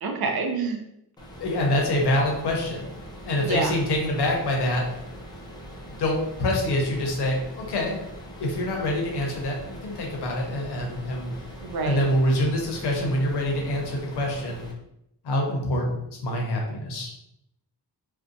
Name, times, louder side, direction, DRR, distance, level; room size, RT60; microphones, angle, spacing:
voice 1, 0.0-0.8 3.4-3.8 11.6-12.1, right 3 dB, 60° right, 3 dB, 0.5 m, -27 dB
sound 1, 1.2-14.7, equal, 10° left, 0.3 m, -42 dB
voice 2, 1.4-2.9 3.3-4.9 5.9-8.0 8.4-11.3 11.8-14.6 15.2-17.1, left 1 dB, 70° left, 0 dB, 0.7 m, -25 dB
2.5 x 2.1 x 2.6 m, 0.79 s
wide cardioid pair, 175°, 41 cm